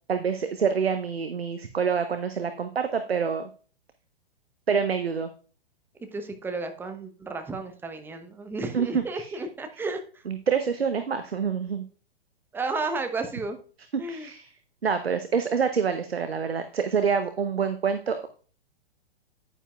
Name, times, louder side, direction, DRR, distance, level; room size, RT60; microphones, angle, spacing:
voice 1, 0.1-3.5 4.7-5.3 8.7-9.3 10.3-11.9 13.9-14.5 14.8-18.3, right 6 dB, 75° right, 9 dB, 0.9 m, -26 dB
voice 2, 6.1-10.2 12.5-13.6 14.0-14.3, right 3 dB, 5° right, 6 dB, 0.8 m, -33 dB
10.0 x 9.4 x 2.3 m, 0.41 s
figure-of-eight pair, 110°, 31 cm